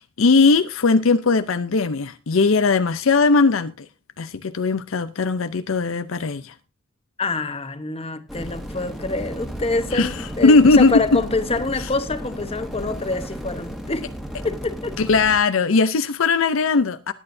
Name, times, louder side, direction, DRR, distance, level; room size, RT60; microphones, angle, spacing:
voice 1, 0.0-3.9 4.2-6.5 9.9-11.2 11.8-11.9 15.0-17.1, left 4 dB, 70° left, 0.6 m, -18 dB
voice 2, 7.2-14.1 14.4-15.0, left 3 dB, 30° left, 1.1 m, -26 dB
sound 1, 8.3-15.4, equal, ahead, 1.7 m, -34 dB
19.5 x 9.0 x 2.7 m
head